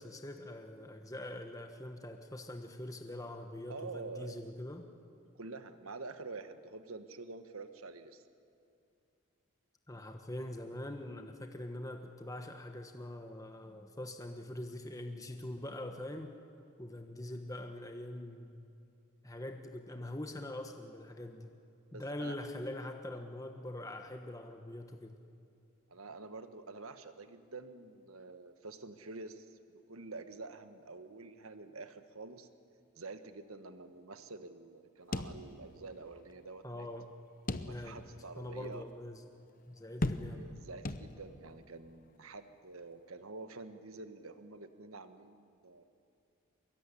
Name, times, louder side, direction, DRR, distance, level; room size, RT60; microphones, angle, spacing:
voice 1, 0.0-4.8 9.9-16.3 16.8-18.5 19.2-21.5 21.9-25.2 36.6-37.1 37.6-38.0 38.4-39.2 39.7-40.5, left 1 dB, 15° left, 5 dB, 1.1 m, -43 dB
voice 2, 3.7-4.4 5.4-8.2 21.9-22.3 25.9-32.5 33.0-36.9 37.6-38.8 40.3-45.8, right 3 dB, 85° right, 9 dB, 1.4 m, -47 dB
sound 1, 35.1-36.0 36.3-36.4 37.5-38.1 38.6-38.7 40.0-40.6 40.8-41.5, left 2 dB, 40° left, 0.9 m, -37 dB
23.5 x 22.0 x 9.9 m, 2.6 s
head